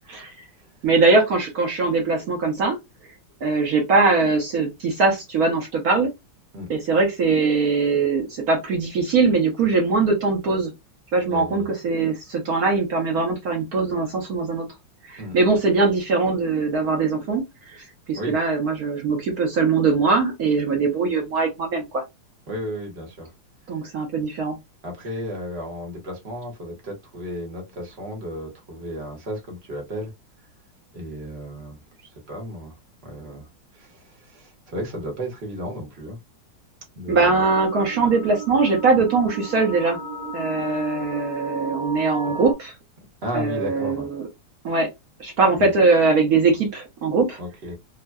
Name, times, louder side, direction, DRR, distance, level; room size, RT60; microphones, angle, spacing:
voice 1, 0.8-2.8 3.4-6.1 6.7-10.7 11.1-14.7 15.0-22.0 23.7-24.5 37.1-40.0 40.3-42.7 43.3-44.3 44.6-44.9 45.2-47.4, right 4 dB, 60° right, 1.0 m, -21 dB
voice 2, 11.3-11.7 15.2-15.4 18.1-18.4 22.5-23.3 24.8-30.1 30.9-32.8 33.0-36.2 36.9-37.4 42.2-42.4 43.2-44.1 45.5-45.7 47.4-47.8, equal, 40° right, 1.1 m, -34 dB
sound 1, 37.1-42.5, right 2 dB, 5° left, 0.4 m, -34 dB
3.7 x 2.2 x 2.2 m
omnidirectional pair, 2.3 m